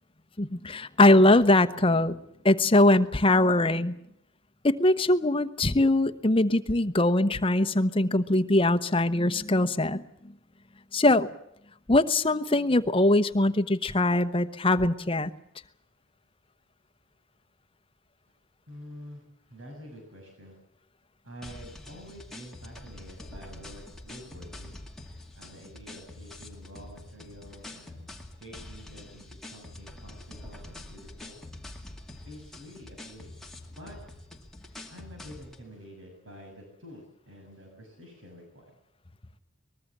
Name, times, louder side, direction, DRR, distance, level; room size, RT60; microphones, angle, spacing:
voice 1, 0.4-2.2 2.4-3.9 4.6-10.0 10.9-11.3 11.9-15.3, left 2 dB, 25° left, 10 dB, 1.0 m, -22 dB
voice 2, 18.7-20.6 21.2-24.8 25.3-28.1 28.4-31.4 32.3-33.4 33.7-34.1 34.9-38.6, equal, 75° right, 2 dB, 6.7 m, -48 dB
sound 1, 21.4-35.6, left 1 dB, ahead, 2.2 m, -45 dB
23.5 x 21.0 x 7.4 m, 0.80 s
head